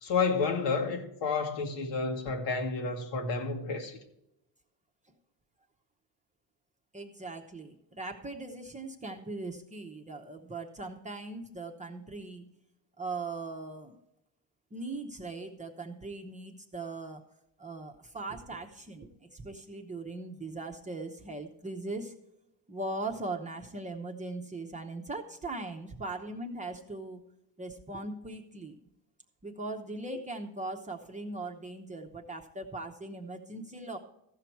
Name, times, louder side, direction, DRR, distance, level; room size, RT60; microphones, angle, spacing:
voice 1, 0.0-4.0, left 4 dB, 80° left, 1.7 m, -30 dB
voice 2, 6.9-12.4 13.0-14.0 14.7-17.2 17.6-22.1 22.7-27.2 27.6-28.8 29.4-34.0, right 2 dB, 15° right, 0.8 m, -39 dB
14.5 x 5.8 x 4.5 m
cardioid pair, 120°, 43 cm